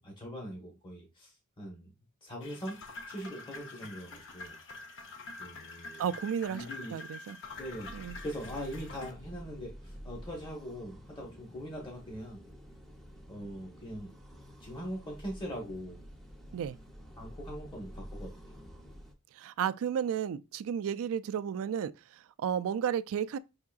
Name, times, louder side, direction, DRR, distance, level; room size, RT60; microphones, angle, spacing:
voice 1, 0.0-1.9 2.2-2.8 3.1-4.6 5.4-6.0 6.5-7.0 7.6-12.4 13.3-14.2 14.6-16.1 17.2-18.6, equal, 20° left, 1.0 m, -42 dB
sound 1, 2.4-9.1, left 3 dB, 60° left, 0.7 m, -46 dB
voice 2, 6.0-6.6 6.9-7.4 7.9-8.2 16.5-16.8 19.3-23.4, right 8 dB, 65° right, 0.3 m, -33 dB
sound 2, 7.5-19.1, equal, ahead, 0.7 m, -49 dB
5.6 x 3.6 x 2.3 m
head